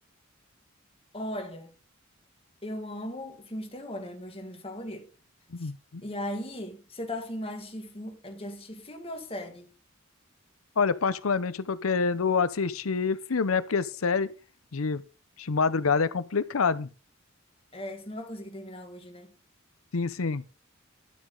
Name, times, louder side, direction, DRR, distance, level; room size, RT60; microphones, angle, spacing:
voice 1, 1.1-1.7 2.6-5.1 5.6-5.7 6.0-9.7 17.7-19.3, left 1 dB, 30° left, 1.9 m, -38 dB
voice 2, 5.5-6.0 10.8-14.3 14.7-15.0 15.4-16.9 19.9-20.4, left 5 dB, 85° left, 0.7 m, -27 dB
11.5 x 8.0 x 3.9 m
head